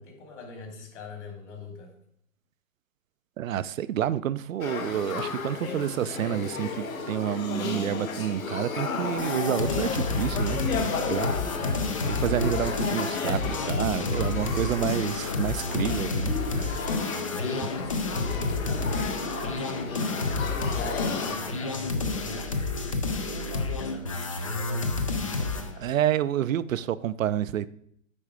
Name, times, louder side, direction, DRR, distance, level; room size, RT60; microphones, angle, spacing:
voice 1, 0.0-1.9 17.3-17.6 18.1-25.9, left 3 dB, 55° left, 2.9 m, -43 dB
voice 2, 3.4-16.8 17.6-17.7 25.8-27.7, right 11 dB, 75° right, 0.6 m, -29 dB
Male speech man speaking / Child speech kid speaking / Conversation, 4.6-21.4, left 5 dB, 80° left, 1.4 m, -33 dB
sound 1, 9.2-25.7, left 3 dB, 25° left, 0.4 m, -30 dB
8.5 x 4.5 x 5.0 m
hypercardioid pair, 155°, 41 cm